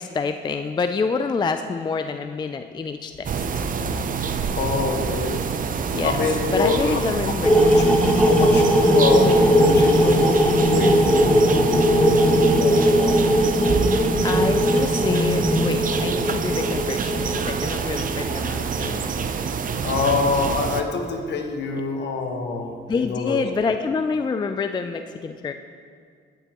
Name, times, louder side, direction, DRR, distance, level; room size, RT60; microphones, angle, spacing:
voice 1, 0.0-3.4 5.9-6.1 6.5-7.5 14.2-19.2 22.9-25.5, left 4 dB, 20° left, 8 dB, 0.3 m, -27 dB
sound 1, 3.2-20.8, right 6 dB, 45° right, 0.6 m, -27 dB
voice 2, 4.5-5.4 6.0-7.0 7.5-7.9 8.2-10.4 10.7-13.2 19.8-23.4, left 4 dB, 60° left, 3 dB, 1.3 m, -26 dB
sound 2, 7.4-18.4, equal, 5° left, 1.2 m, -19 dB
16.5 x 6.8 x 3.0 m, 2.1 s
cardioid pair, 90°, 20 cm